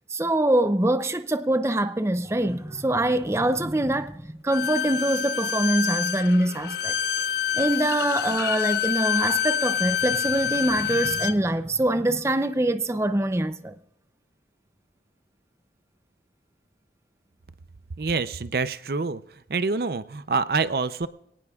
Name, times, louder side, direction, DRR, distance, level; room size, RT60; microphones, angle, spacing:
voice 1, 0.1-6.9 7.5-13.7, right 1 dB, 15° right, 0.5 m, -24 dB
Bowed string instrument, 4.5-11.4, left 8 dB, 65° left, 0.5 m, -27 dB
voice 2, 18.0-19.2 19.5-21.1, right 4 dB, 60° right, 0.6 m, -26 dB
25.0 x 18.0 x 2.4 m
head